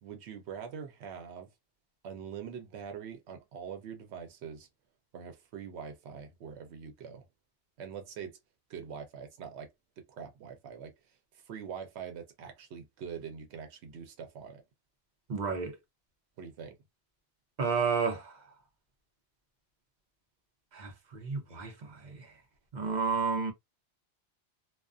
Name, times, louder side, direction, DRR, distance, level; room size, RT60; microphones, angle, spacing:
voice 1, 0.0-1.5 2.0-4.7 5.1-7.2 7.8-8.4 8.7-9.7 10.0-14.6 16.4-16.7, right 7 dB, 90° right, 0.9 m, -44 dB
voice 2, 15.3-15.8 17.6-18.4 20.7-22.3 22.7-23.5, right 5 dB, 50° right, 0.7 m, -31 dB
2.3 x 2.3 x 2.4 m
omnidirectional pair, 1.1 m